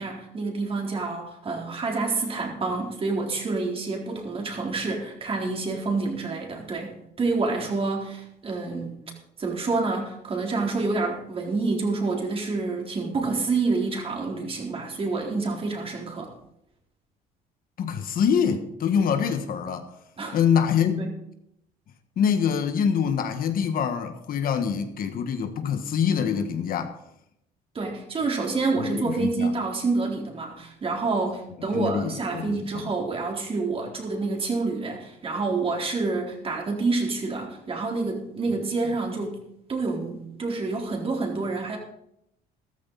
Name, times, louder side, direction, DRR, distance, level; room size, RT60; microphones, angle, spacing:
voice 1, 0.0-9.0 9.4-16.3 20.2-20.4 21.0-21.1 27.7-39.4 39.7-41.8, right 3 dB, 35° right, 4.0 m, -28 dB
voice 2, 17.8-19.9 20.3-21.0 22.2-26.9 28.8-29.5 31.7-32.6, left 7 dB, 60° left, 1.5 m, -25 dB
14.0 x 13.5 x 4.0 m
cardioid pair, 110°, 17 cm